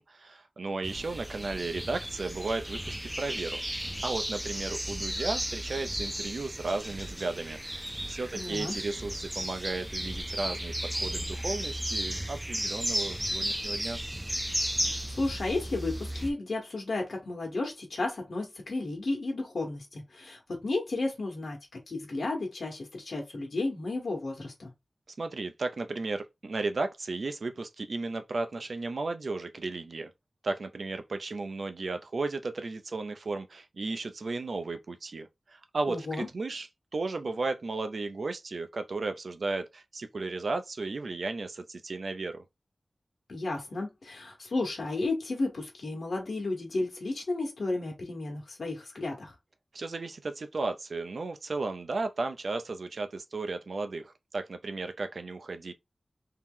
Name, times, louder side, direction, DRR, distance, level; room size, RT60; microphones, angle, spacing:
voice 1, 0.0-3.6 4.0-14.0 25.2-30.1 30.4-42.4 49.7-55.7, right 3 dB, 75° right, 0.5 m, -34 dB
sound 1, 0.8-16.3, right 1 dB, 10° right, 0.6 m, -34 dB
voice 2, 8.3-8.7 14.8-24.7 35.9-36.3 43.3-49.3, left 2 dB, 80° left, 1.0 m, -33 dB
3.0 x 2.8 x 3.6 m
wide cardioid pair, 90°, 0 cm